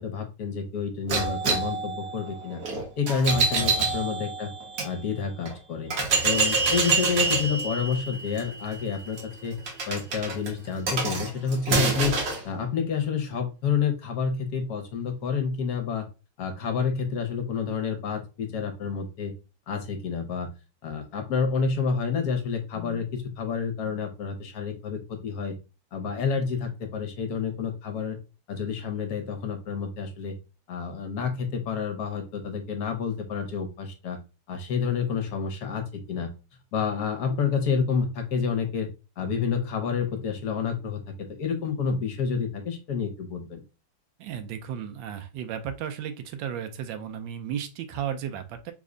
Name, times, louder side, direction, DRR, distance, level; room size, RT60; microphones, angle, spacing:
voice 1, 0.0-2.6 3.0-4.5 4.8-5.9 6.2-9.6 9.9-12.2 12.4-16.1 16.4-19.3 19.7-20.5 20.8-25.5 25.9-28.2 28.5-30.4 30.7-34.2 34.5-36.3 36.7-38.9 39.2-43.6, left 6 dB, 65° left, 5 dB, 1.1 m, -29 dB
sound 1, 1.1-4.9 5.5-5.6 5.9-12.4, right 4 dB, 60° right, 1.3 m, -27 dB
voice 2, 3.5-3.9 44.2-48.7, right 9 dB, 85° right, 8 dB, 1.3 m, -34 dB
3.5 x 2.1 x 3.7 m, 0.30 s
omnidirectional pair, 1.9 m